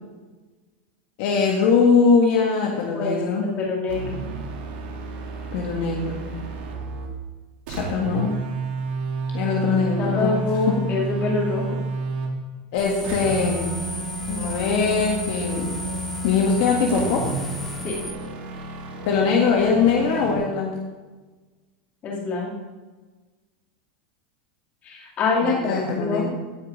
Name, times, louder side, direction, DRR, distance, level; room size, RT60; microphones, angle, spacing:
voice 1, 1.2-3.5 5.5-6.2 7.7-8.3 9.3-10.4 10.7-10.8 12.7-13.7 14.3-15.7 16.2-17.2 19.1-20.7 25.4-26.3, left 5 dB, 55° left, -1 dB, 1.8 m, -21 dB
voice 2, 2.8-3.2 3.6-4.2 10.0-11.8 17.8-18.0 22.0-22.5 24.8-26.5, left 3 dB, 30° left, -2 dB, 3.0 m, -25 dB
sound 1, 3.9-7.2 7.7-12.4 13.0-20.4, right 3 dB, 70° right, 2.4 m, -31 dB
sound 2, 12.8-18.1, left 2 dB, 5° left, 1.1 m, -34 dB
16.5 x 5.6 x 5.3 m, 1.3 s
supercardioid pair, 155°, 5 cm